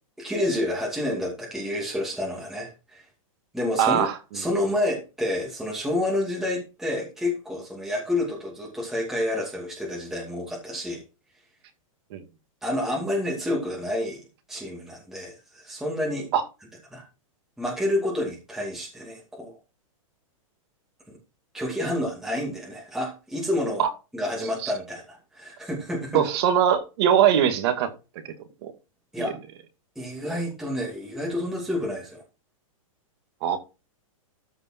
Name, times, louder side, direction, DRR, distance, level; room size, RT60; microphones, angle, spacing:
voice 1, 0.2-3.0 3.5-4.1 4.3-11.0 12.6-16.3 16.9-17.0 17.6-19.6 21.1-21.2 21.5-23.8 24.1-26.3 29.1-29.4 30.0-32.2, left 1 dB, ahead, 2.5 m, -29 dB
voice 2, 3.8-4.1 12.1-12.2 16.3-16.4 23.8-23.9 24.6-24.7 26.1-27.9 28.6-28.7 29.2-29.3 33.4-33.6, right 9 dB, 45° right, 2.1 m, -21 dB
13.5 x 5.3 x 4.4 m
hypercardioid pair, 155°, 18 cm